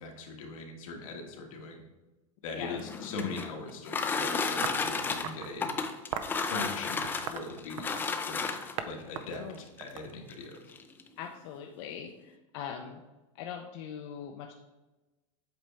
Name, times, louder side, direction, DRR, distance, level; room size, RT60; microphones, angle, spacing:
voice 1, 0.0-1.8 2.4-5.7 6.5-8.6 8.8-10.7, left 3 dB, 80° left, 1 dB, 1.4 m, -41 dB
sound 1, 2.7-8.9 9.8-9.9 10.3-10.4 10.7-11.1, left 4 dB, 10° left, 0.4 m, -33 dB
sound 2, 4.6-5.5 6.1-6.4 7.0-8.2 8.8-8.9 9.2-10.6, right 8 dB, 70° right, 0.6 m, -38 dB
voice 2, 11.2-12.1 12.5-13.0 13.4-14.5, left 8 dB, 55° left, 2 dB, 0.6 m, -41 dB
7.9 x 4.3 x 3.4 m, 1.1 s
supercardioid pair, 145°, 17 cm